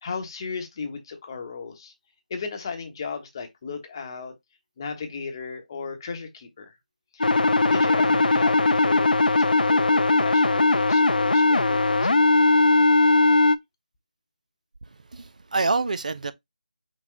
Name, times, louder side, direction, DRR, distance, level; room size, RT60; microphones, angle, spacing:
voice 1, 0.0-1.9 2.3-4.4 4.8-6.7 7.1-7.3 7.7-12.2, left 5 dB, 30° left, 0.9 m, -35 dB
sound 1, 7.2-13.6, left 2 dB, 75° left, 0.5 m, -19 dB
voice 2, 14.8-16.3, right 3 dB, 55° right, 0.5 m, -27 dB
5.8 x 2.3 x 3.8 m
figure-of-eight pair, 160°, 5 cm